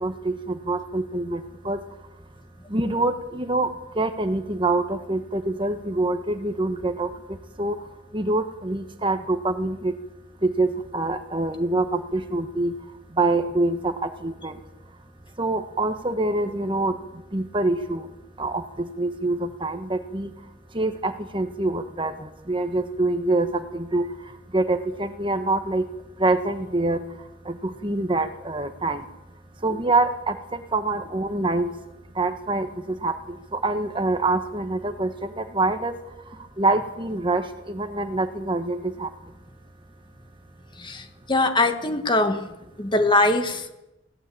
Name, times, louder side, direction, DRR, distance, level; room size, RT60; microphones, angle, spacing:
voice 1, 0.0-1.8 2.7-3.7 3.9-7.1 7.6-7.8 8.1-9.9 10.4-12.7 13.2-14.6 15.4-17.0 17.3-18.1 18.4-20.3 20.7-24.1 24.5-25.9 26.2-27.0 27.4-29.0 29.6-31.7 32.1-35.9 36.6-39.1, right 2 dB, 25° right, 8 dB, 1.4 m, -25 dB
voice 2, 40.8-42.5 42.8-43.7, left 2 dB, 25° left, 7 dB, 1.9 m, -22 dB
22.5 x 17.5 x 8.6 m, 0.94 s
head